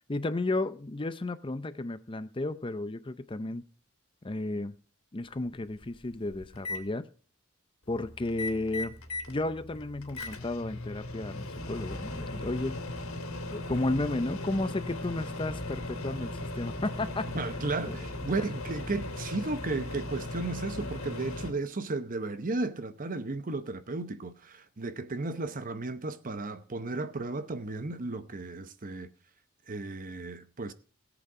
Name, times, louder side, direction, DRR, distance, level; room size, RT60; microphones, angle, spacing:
voice 1, 0.1-3.6 4.2-4.7 5.1-7.1 7.9-8.9 9.3-12.7 13.5-17.2 17.9-18.0, left 2 dB, 25° left, 0.6 m, -33 dB
Microwave oven, 5.3-5.4 5.8-6.8 8.2-9.3 9.7-21.5, left 2 dB, 85° left, 2.2 m, -37 dB
sound 1, 7.9-19.7, equal, 65° right, 3.7 m, -52 dB
voice 2, 17.3-29.1 29.7-30.7, right 3 dB, 40° right, 0.8 m, -34 dB
17.5 x 8.1 x 4.9 m
head